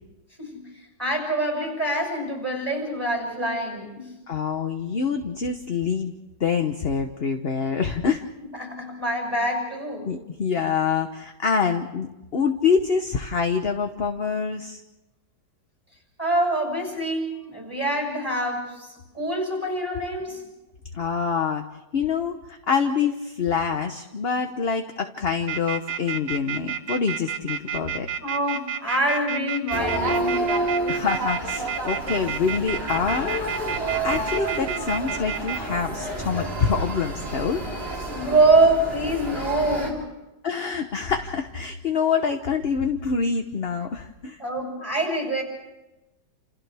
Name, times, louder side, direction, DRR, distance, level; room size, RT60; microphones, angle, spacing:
voice 1, 1.0-4.1 8.6-10.1 16.2-20.4 28.2-30.4 38.1-40.1 44.4-45.4, right 2 dB, 5° right, 0 dB, 6.9 m, -25 dB
voice 2, 4.3-6.1 6.4-8.3 10.0-14.8 20.9-21.7 21.9-28.1 30.9-33.5 34.0-37.6 40.4-44.4, left 6 dB, 40° left, 5 dB, 1.0 m, -26 dB
sound 1, 25.5-35.6, right 9 dB, 85° right, 1.7 m, -30 dB
sound 2, 29.7-39.9, right 2 dB, 30° right, 3.8 m, -29 dB
29.5 x 28.0 x 3.5 m, 1.0 s
omnidirectional pair, 1.9 m